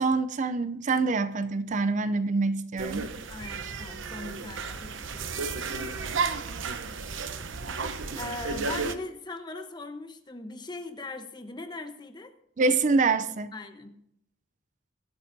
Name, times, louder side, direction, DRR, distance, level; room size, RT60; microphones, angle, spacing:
voice 1, 0.0-3.1 3.6-3.7 12.6-13.5, right 3 dB, 40° right, 12 dB, 0.5 m, -26 dB
sound 1, 2.8-8.9, right 4 dB, 85° right, 0.8 m, -33 dB
voice 2, 3.3-5.7 8.2-12.3 13.5-14.0, left 2 dB, 25° left, 7 dB, 1.0 m, -40 dB
22.5 x 8.9 x 2.7 m, 0.76 s
head